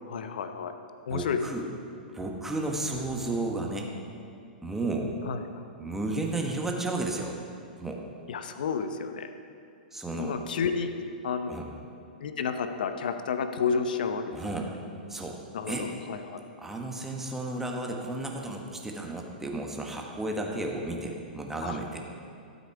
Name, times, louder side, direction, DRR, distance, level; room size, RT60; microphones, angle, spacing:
voice 1, 0.1-0.7 1.1-1.4 5.3-5.4 8.3-9.3 10.2-10.9 11.2-11.5 12.2-14.4 15.5-16.4 21.6-21.8, left 6 dB, 70° left, 8 dB, 0.7 m, -31 dB
voice 2, 1.1-1.6 2.1-3.9 4.6-5.1 5.8-7.3 7.8-8.0 9.9-10.4 11.5-11.7 14.3-14.7 15.1-15.4 15.7-15.9 16.6-22.0, right 2 dB, 5° right, 0 dB, 1.4 m, -33 dB
12.5 x 8.1 x 4.8 m, 2.5 s
hypercardioid pair, 110°, 5 cm